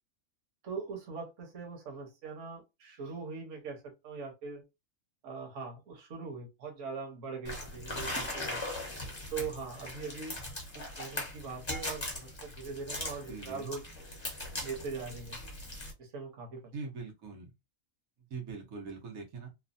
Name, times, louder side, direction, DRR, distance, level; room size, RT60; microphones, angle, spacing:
voice 1, 0.6-4.6 5.2-8.6 9.3-10.4 10.7-13.8 14.6-15.4 16.0-16.7, right 5 dB, 65° right, 1.3 m, -41 dB
sound 1, 7.4-15.9, left 1 dB, 25° left, 0.9 m, -40 dB
voice 2, 13.3-13.7 16.7-17.5 18.3-19.5, right 4 dB, 90° right, 1.3 m, -42 dB
3.1 x 2.1 x 2.5 m
omnidirectional pair, 1.4 m